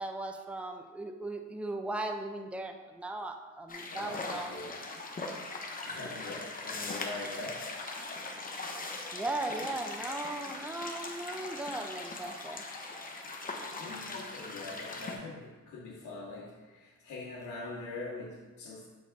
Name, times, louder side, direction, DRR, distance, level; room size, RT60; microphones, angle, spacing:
voice 1, 0.0-4.5 9.1-12.6, right 2 dB, 5° right, 4 dB, 0.5 m, -37 dB
sound 1, 3.7-15.2, left 3 dB, 30° left, 0.9 m, -40 dB
voice 2, 3.9-4.8 5.8-7.6 13.8-18.9, left 3 dB, 70° left, -12 dB, 2.0 m, -43 dB
7.1 x 4.6 x 3.6 m, 1.3 s
cardioid pair, 90°, 30 cm